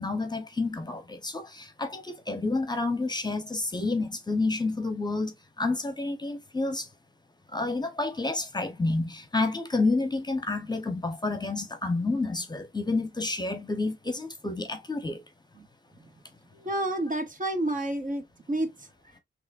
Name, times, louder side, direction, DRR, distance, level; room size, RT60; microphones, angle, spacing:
voice 1, 0.0-5.3 5.6-6.8 7.5-15.2, left 3 dB, 20° left, 0.9 m, -29 dB
voice 2, 16.5-18.7 19.1-19.2, right 1 dB, 40° right, 1.1 m, -30 dB
5.7 x 3.2 x 2.5 m
wide cardioid pair, 160°, 20 cm